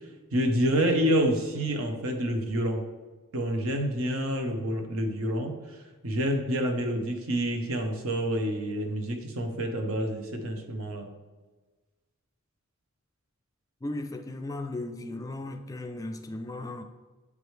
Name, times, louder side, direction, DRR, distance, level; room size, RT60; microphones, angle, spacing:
voice 1, 0.3-2.8 3.3-5.8 6.0-11.1, equal, 70° right, 0.9 m, -28 dB
voice 2, 13.8-16.8, left 2 dB, 15° left, 0.3 m, -36 dB
8.2 x 4.8 x 3.2 m
head